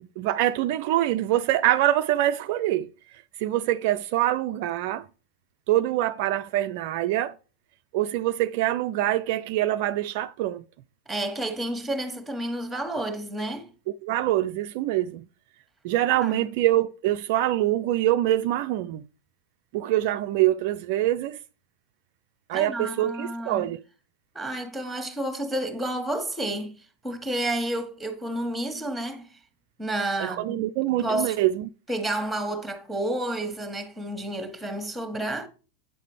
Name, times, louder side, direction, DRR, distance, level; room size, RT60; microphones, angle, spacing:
voice 1, 0.2-5.0 5.7-7.4 7.9-10.6 14.0-15.2 15.8-19.0 19.7-21.4 22.5-23.8 30.2-31.7, right 14 dB, 45° right, 0.3 m, -25 dB
voice 2, 11.1-13.7 16.1-16.4 22.5-23.6 24.3-29.4 29.8-30.6 31.0-31.4 31.9-35.5, right 1 dB, ahead, 1.4 m, -30 dB
8.8 x 6.5 x 3.2 m
figure-of-eight pair, 90°, 0 cm